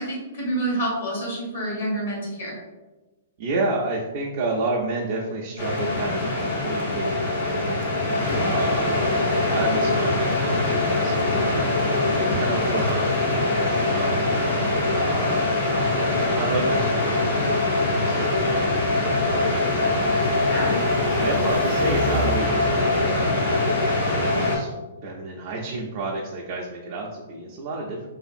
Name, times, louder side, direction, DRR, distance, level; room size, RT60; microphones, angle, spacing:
voice 1, 0.0-2.5 20.5-20.8, right 1 dB, 65° left, -4 dB, 1.2 m, -28 dB
voice 2, 3.4-6.3 6.6-7.8 8.4-9.1 9.5-11.8 12.1-14.1 15.0-15.4 16.3-19.8 20.5-23.7 24.2-24.7 25.0-28.1, right 2 dB, 50° right, -3 dB, 0.4 m, -30 dB
sound 1, 5.6-24.6, left 2 dB, 80° left, 1.4 m, -23 dB
sound 2, 5.8-13.4, left 2 dB, 40° left, 0.8 m, -37 dB
Car passing by, 18.8-23.9, equal, 20° left, 0.4 m, -36 dB
2.6 x 2.4 x 2.4 m, 1.1 s
hypercardioid pair, 145°, 0 cm